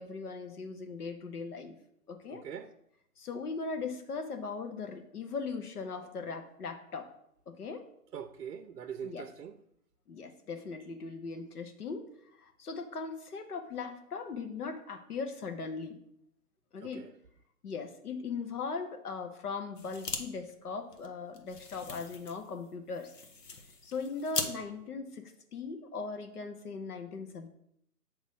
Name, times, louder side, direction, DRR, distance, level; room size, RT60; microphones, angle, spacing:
voice 1, 0.0-1.8 2.1-2.4 3.2-7.1 7.5-7.8 9.0-9.3 10.1-12.1 12.6-16.0 16.7-17.0 17.6-23.1 23.8-25.2 25.5-27.5, left 4 dB, 65° left, 1.1 m, -39 dB
voice 2, 2.3-2.7 8.1-9.6 16.8-17.1, right 8 dB, 75° right, 0.6 m, -42 dB
sound 1, 19.8-20.2 20.5-20.6 20.9-24.5, left 4 dB, 90° left, 1.1 m, -40 dB
7.7 x 3.1 x 5.4 m
hypercardioid pair, 160°, 48 cm